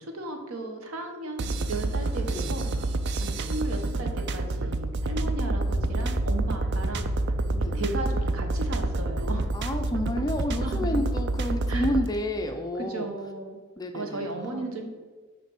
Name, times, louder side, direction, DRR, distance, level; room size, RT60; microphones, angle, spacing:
voice 1, 0.0-2.9 3.2-7.1 7.7-9.6 10.6-10.9 11.7-11.9 12.8-13.6 13.9-14.9, right 2 dB, 80° right, 4 dB, 1.0 m, -35 dB
sound 1, 1.4-12.1, right 2 dB, 55° right, 0.4 m, -28 dB
sound 2, 4.9-5.2 5.5-5.8 6.1-6.4 6.7-7.0 7.3-7.6 7.9-8.2 8.5-8.8 9.1-9.4 9.7-10.0 10.3-10.6, left 1 dB, ahead, 1.4 m, -35 dB
voice 2, 7.5-7.9 9.5-13.1 13.8-14.7, left 1 dB, 20° left, 4 dB, 0.5 m, -30 dB
6.9 x 3.3 x 6.2 m, 1.4 s
head